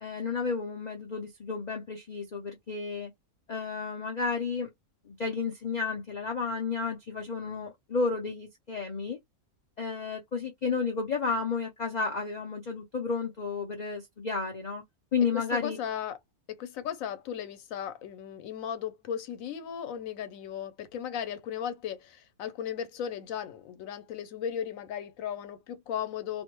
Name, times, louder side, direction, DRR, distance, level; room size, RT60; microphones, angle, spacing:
voice 1, 0.0-3.1 3.5-4.7 5.1-9.2 9.8-14.8 15.1-15.8, left 4 dB, 85° left, 0.3 m, -32 dB
voice 2, 15.3-16.2 16.5-26.4, left 9 dB, 70° left, 1.0 m, -36 dB
2.6 x 2.1 x 2.9 m
omnidirectional pair, 1.5 m